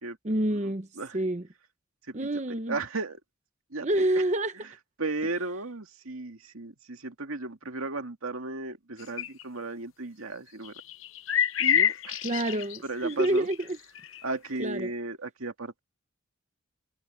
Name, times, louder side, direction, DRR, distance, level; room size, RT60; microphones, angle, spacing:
voice 1, 0.2-0.9 1.1-1.5 2.1-2.8 3.8-4.5 12.2-13.8 14.6-14.9, right 1 dB, 35° right, 0.9 m, -27 dB
voice 2, 2.7-3.2 3.7-4.0 5.0-10.7 11.6-12.2 12.8-13.5 14.2-15.8, right 3 dB, 85° right, 2.2 m, -35 dB
sound 1, 9.2-9.4 10.6-13.6 13.9-14.2 14.6-14.7, left 9 dB, 70° left, 0.9 m, -27 dB
head